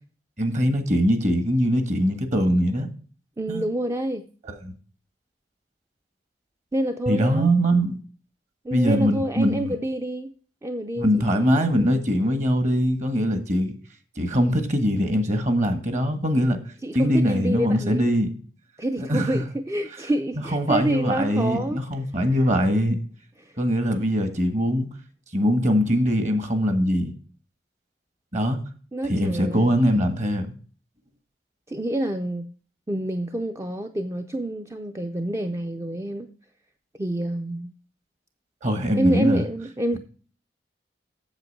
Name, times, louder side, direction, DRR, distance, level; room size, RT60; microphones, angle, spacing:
voice 1, 0.4-2.9 3.5-3.6 4.6-4.7 7.1-8.0 8.7-9.7 11.0-13.7 14.2-16.6 16.9-18.4 19.0-19.4 20.5-23.0 23.6-24.9 25.3-27.1 28.3-28.6 29.1-30.5 38.6-39.4, equal, 45° right, 1.5 m, -22 dB
voice 2, 3.4-4.2 6.7-7.5 8.6-10.3 10.6-11.4 16.8-18.1 18.8-21.8 22.3-22.4 23.4-23.6 28.9-29.8 31.7-32.5 32.9-36.3 37.0-37.7 38.9-40.0, right 1 dB, 15° right, 0.4 m, -27 dB
8.0 x 7.2 x 5.4 m
head